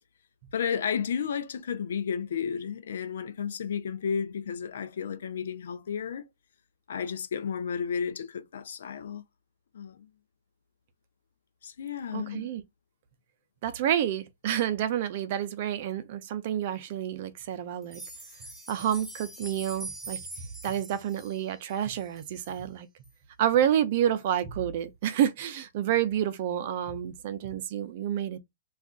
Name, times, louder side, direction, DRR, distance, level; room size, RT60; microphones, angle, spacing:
voice 1, 0.5-6.2 6.9-9.2 9.7-10.1 11.6-12.5, left 7 dB, 75° left, 0.5 m, -32 dB
voice 2, 12.1-12.6 13.6-18.0 18.7-20.2 20.6-22.9 23.4-28.4, right 10 dB, 50° right, 0.5 m, -29 dB
sound 1, 17.8-22.6 23.0-23.1 23.6-23.7 24.2-24.3, right 2 dB, ahead, 0.8 m, -44 dB
2.4 x 2.3 x 3.5 m
hypercardioid pair, 145°, 0 cm